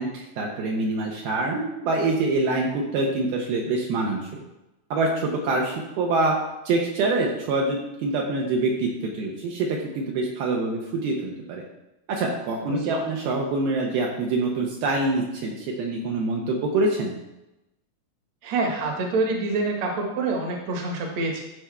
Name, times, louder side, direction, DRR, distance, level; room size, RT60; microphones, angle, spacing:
voice 1, 0.0-4.4 4.9-6.4 6.7-11.6 12.1-17.2, right 2 dB, 75° right, -1 dB, 2.6 m, -25 dB
voice 2, 12.6-13.0 18.4-21.4, right 3 dB, 55° right, 0 dB, 2.2 m, -26 dB
14.5 x 5.2 x 3.4 m, 0.96 s
omnidirectional pair, 4.9 m